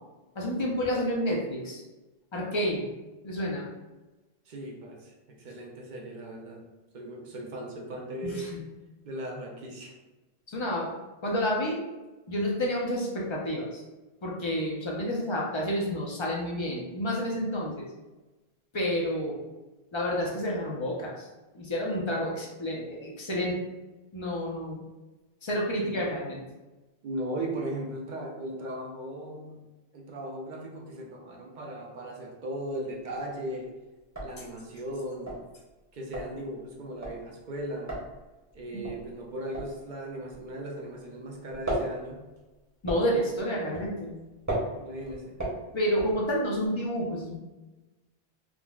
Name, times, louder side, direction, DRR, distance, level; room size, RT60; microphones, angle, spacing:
voice 1, 0.4-1.8 2.3-2.9 3.2-3.7 8.2-8.6 10.5-10.9 11.2-11.8 12.3-13.8 14.2-17.8 18.7-19.4 19.9-21.3 21.5-23.6 24.1-24.8 25.4-26.4 42.8-44.1 45.7-47.3, equal, 40° left, -3 dB, 0.4 m, -29 dB
voice 2, 4.5-6.6 6.9-8.5 9.0-10.0 25.8-26.0 27.0-29.6 29.9-33.7 34.2-35.4 35.9-37.9 38.5-42.2 44.7-45.4, right 1 dB, 55° right, -1 dB, 0.6 m, -37 dB
sound 1, 32.8-33.3 33.6-33.7 34.0-41.1 41.3-46.7, right 1 dB, 20° right, 0.7 m, -36 dB
3.7 x 2.0 x 2.3 m, 1.1 s
omnidirectional pair, 1.1 m